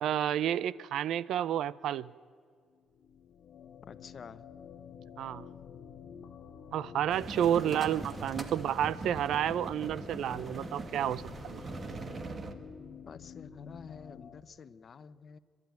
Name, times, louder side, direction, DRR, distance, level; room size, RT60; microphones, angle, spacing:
voice 1, 0.0-2.1 5.2-5.4 6.7-11.6, right 10 dB, 75° right, 21 dB, 0.5 m, -30 dB
sound 1, 2.8-14.4, left 7 dB, 70° left, 1.2 m, -50 dB
voice 2, 3.9-4.4 7.6-7.8 13.1-15.4, left 6 dB, 50° left, 15 dB, 0.9 m, -48 dB
sound 2, 7.1-12.5, right 3 dB, 40° right, 1.9 m, -42 dB
28.0 x 12.0 x 9.4 m, 2.2 s
cardioid pair, 90°, 0 cm